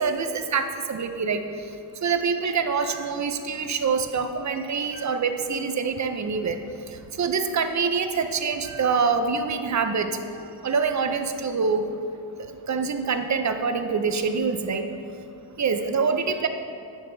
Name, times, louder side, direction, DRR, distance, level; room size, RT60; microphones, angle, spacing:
voice 1, 0.0-1.4 2.0-6.6 7.2-10.1 10.6-11.8 12.7-14.8 15.6-16.5, right 5 dB, 35° right, 7 dB, 0.5 m, -25 dB
9.9 x 5.7 x 3.9 m, 2.6 s
cardioid pair, 110°, 49 cm